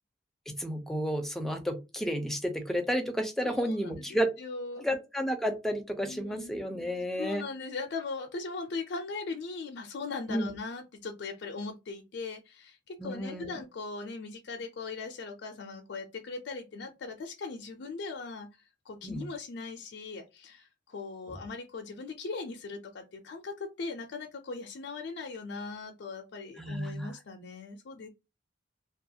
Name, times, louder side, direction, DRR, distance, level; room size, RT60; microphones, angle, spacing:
voice 1, 0.5-4.3 4.8-7.4 10.3-10.5 13.0-13.6 19.0-19.3 21.3-21.4 26.6-27.1, equal, ahead, 0.4 m, -32 dB
voice 2, 3.4-4.9 6.0-6.5 7.2-18.5 18.9-28.1, left 4 dB, 65° left, 0.4 m, -39 dB
2.4 x 2.3 x 2.7 m
head